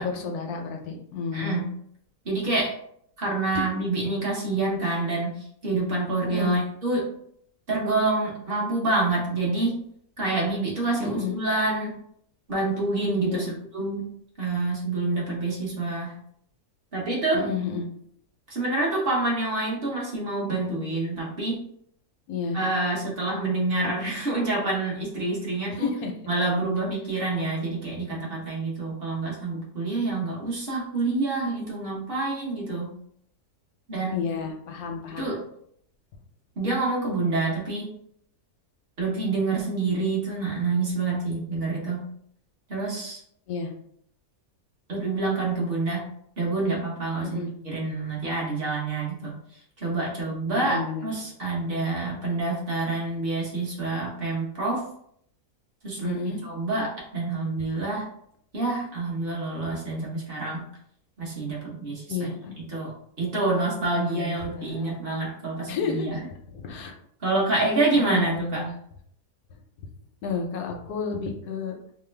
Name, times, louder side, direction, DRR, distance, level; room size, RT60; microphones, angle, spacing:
voice 1, 0.0-1.6 6.3-6.6 11.0-11.4 13.2-13.5 17.3-17.9 22.3-22.6 25.7-26.1 34.1-35.3 43.5-43.7 47.2-47.5 50.5-51.1 56.0-56.4 62.1-62.5 63.9-65.0 65.7-66.9 67.9-68.7 70.2-71.8, left 5 dB, 75° left, 3 dB, 1.0 m, -31 dB
voice 2, 1.3-1.7 2.2-2.7 3.2-7.1 7.7-9.8 10.2-11.9 12.5-13.5 13.7-14.1 14.4-16.1 16.9-17.5 18.5-21.6 22.5-25.9 26.3-32.9 33.9-34.2 35.1-35.4 36.6-37.9 39.0-42.0 42.7-43.2 44.9-46.1 46.4-49.3 49.8-54.8 55.8-58.1 58.5-60.6 61.2-62.3 62.7-62.9 63.2-66.2 67.2-68.6, right 3 dB, 40° right, -4 dB, 1.1 m, -27 dB
3.0 x 2.2 x 3.2 m, 0.66 s
omnidirectional pair, 1.7 m